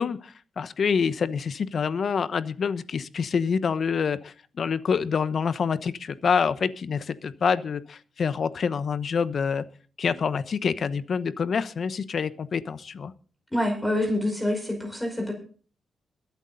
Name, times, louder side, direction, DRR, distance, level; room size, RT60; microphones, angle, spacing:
voice 1, 0.0-9.6 10.0-13.1, left 6 dB, 55° left, 14 dB, 0.9 m, -26 dB
voice 2, 13.5-15.3, left 1 dB, 5° left, 3 dB, 5.2 m, -26 dB
22.0 x 8.2 x 4.0 m, 0.40 s
cardioid pair, 105°, 0 cm